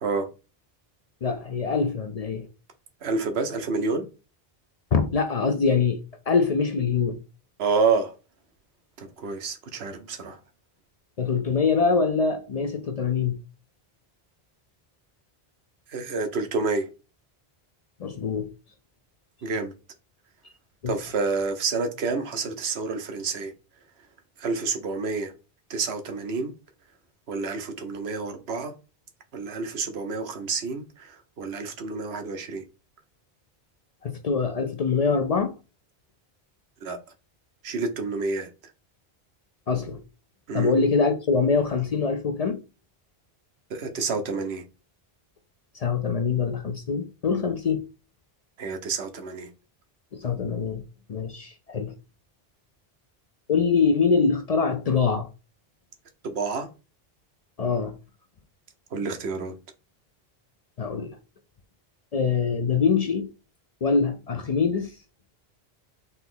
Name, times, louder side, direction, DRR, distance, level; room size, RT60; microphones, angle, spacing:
voice 1, 1.2-2.5 4.9-6.0 6.3-7.2 11.2-13.4 18.0-18.5 20.8-20.9 34.0-35.5 39.7-40.0 40.5-42.6 45.7-47.8 50.1-50.8 51.1-51.9 53.5-55.3 57.6-57.9 60.8-61.2 62.1-63.3 63.8-65.0, left 5 dB, 50° left, 0.5 m, -24 dB
voice 2, 3.0-4.1 7.6-8.1 9.0-10.4 15.9-16.9 19.4-19.7 20.9-23.5 24.4-25.3 25.7-26.5 27.3-28.7 29.3-32.6 36.8-37.0 37.6-38.5 40.5-40.7 43.7-44.6 48.6-49.5 56.2-56.7 58.9-59.6, right 4 dB, 90° right, 1.0 m, -28 dB
4.1 x 2.9 x 3.8 m
omnidirectional pair, 1.0 m